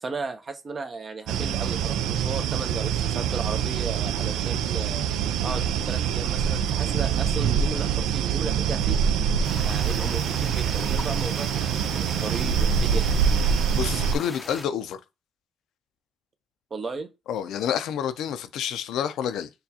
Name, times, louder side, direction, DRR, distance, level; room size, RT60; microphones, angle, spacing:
voice 1, 0.0-5.1 5.4-9.0 9.6-13.1 16.7-17.1, right 4 dB, 40° right, 0.7 m, -35 dB
sound 1, 1.3-14.1, right 7 dB, 90° right, 0.3 m, -25 dB
sound 2, 9.4-14.7, left 2 dB, 15° left, 0.6 m, -40 dB
voice 2, 13.7-15.0 17.3-19.5, left 9 dB, 80° left, 0.5 m, -28 dB
6.6 x 2.3 x 2.8 m
cardioid pair, 90°, 0 cm